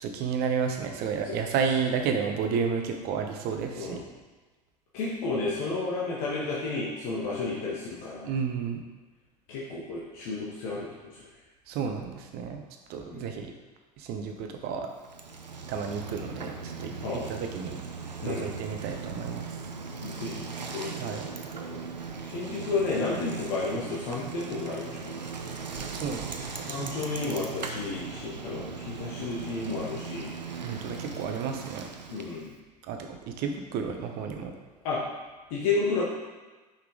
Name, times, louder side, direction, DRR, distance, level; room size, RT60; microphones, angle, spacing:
voice 1, 0.0-4.0 8.3-8.8 11.7-12.6 12.9-13.5 14.0-14.9 15.7-17.8 18.3-19.6 21.0-21.3 25.8-27.5 30.6-31.9 32.9-34.5, right 6 dB, 50° right, 4 dB, 1.0 m, -32 dB
voice 2, 3.7-4.1 4.9-8.3 9.5-11.2 13.1-13.4 17.0-17.3 18.2-18.5 20.0-21.2 21.7-21.8 22.3-25.4 26.7-30.3 32.1-32.5 34.8-35.0 35.5-36.0, left 3 dB, 55° left, -6 dB, 1.4 m, -32 dB
Bicycle, 15.0-32.5, right 5 dB, 85° right, 0.6 m, -38 dB
5.8 x 5.7 x 3.8 m, 1.2 s
figure-of-eight pair, 75°, 21 cm